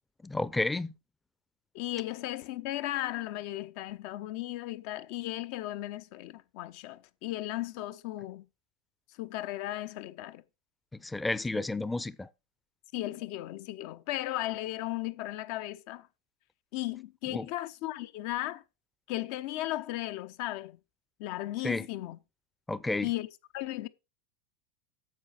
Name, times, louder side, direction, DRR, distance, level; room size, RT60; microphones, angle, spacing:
voice 1, 0.2-0.9 10.9-12.3 17.3-17.5 21.6-21.9 22.7-23.1, left 2 dB, 10° left, 0.6 m, -31 dB
voice 2, 1.7-8.5 9.2-10.4 11.5-11.6 12.9-16.1 16.7-18.6 19.1-20.8 21.2-22.2 23.0-23.3 23.5-23.9, left 15 dB, 60° left, 0.8 m, -36 dB
9.1 x 7.0 x 5.0 m
hypercardioid pair, 85°, 0 cm